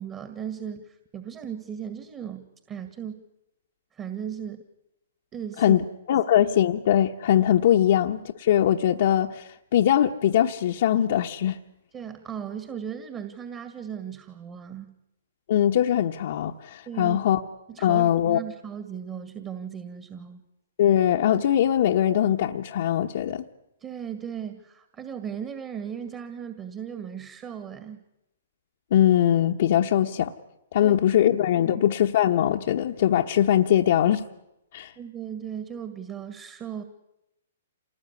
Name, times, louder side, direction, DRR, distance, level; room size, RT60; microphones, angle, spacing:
voice 1, 0.0-3.3 3.9-4.7 5.3-5.8 6.1-6.2 11.9-15.0 16.9-17.2 17.7-20.4 23.8-28.0 30.8-31.0 31.6-31.9 35.0-36.8, right 8 dB, 25° right, 1.9 m, -37 dB
voice 2, 5.6-11.6 15.5-17.4 17.8-18.4 20.8-23.4 28.9-30.3 30.7-34.2 34.7-34.9, left 11 dB, 60° left, 1.2 m, -21 dB
27.5 x 19.5 x 9.8 m
hypercardioid pair, 135°, 0 cm